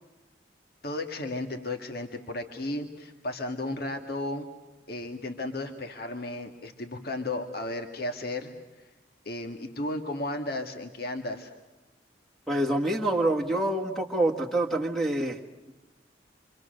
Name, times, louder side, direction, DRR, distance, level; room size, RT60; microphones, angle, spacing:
voice 1, 0.8-4.5 4.9-8.9 9.3-11.5, left 2 dB, 55° left, 5 dB, 1.8 m, -34 dB
voice 2, 12.5-15.4, right 1 dB, ahead, 2 dB, 1.7 m, -26 dB
27.5 x 25.5 x 6.5 m, 1.1 s
head